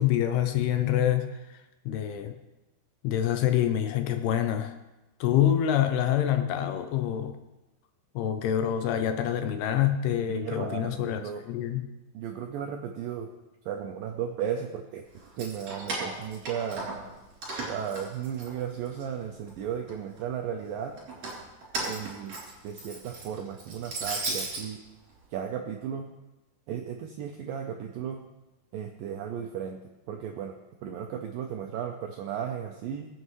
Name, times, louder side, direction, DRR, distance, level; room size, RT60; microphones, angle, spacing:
voice 1, 0.0-1.6 1.9-2.3 3.0-4.7 5.2-7.4 8.2-11.2 11.5-11.8, left 10 dB, 80° left, 7 dB, 2.5 m, -26 dB
voice 2, 10.3-11.4 12.1-13.3 13.7-15.0 15.4-16.9 17.6-20.9 21.8-22.4 22.6-24.8 25.3-26.1 26.7-28.2 28.7-29.8 30.1-30.5 30.8-33.1, right 8 dB, 85° right, 2 dB, 2.0 m, -35 dB
Keys jangling, 15.2-17.1 17.4-19.0 19.5-20.2 21.0-24.6, right 2 dB, 45° right, 4.4 m, -36 dB
23.5 x 7.8 x 3.2 m, 1.0 s
omnidirectional pair, 4.9 m